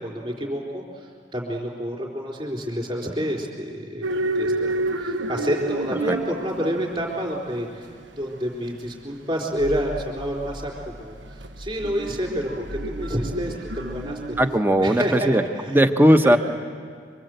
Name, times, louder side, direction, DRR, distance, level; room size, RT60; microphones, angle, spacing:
voice 1, 0.0-4.7 5.0-14.2 14.8-15.8 16.2-16.4, equal, 30° right, -1 dB, 4.3 m, -29 dB
sound 1, 4.0-14.6, right 2 dB, 90° right, 1.2 m, -30 dB
voice 2, 14.4-15.4 15.7-16.4, equal, 10° right, 8 dB, 0.9 m, -17 dB
25.0 x 25.0 x 8.1 m, 2.1 s
head